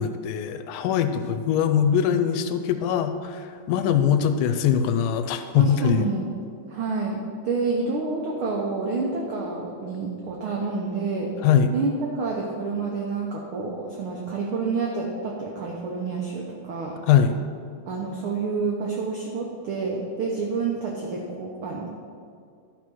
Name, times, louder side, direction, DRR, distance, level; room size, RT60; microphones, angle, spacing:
voice 1, 0.0-6.1 11.4-11.7 17.0-17.4, left 8 dB, 85° left, 9 dB, 2.1 m, -22 dB
voice 2, 5.6-6.3 6.7-11.3 11.7-17.0 17.9-22.0, right 4 dB, 80° right, -1 dB, 1.2 m, -28 dB
12.0 x 4.3 x 6.1 m, 2.3 s
omnidirectional pair, 3.6 m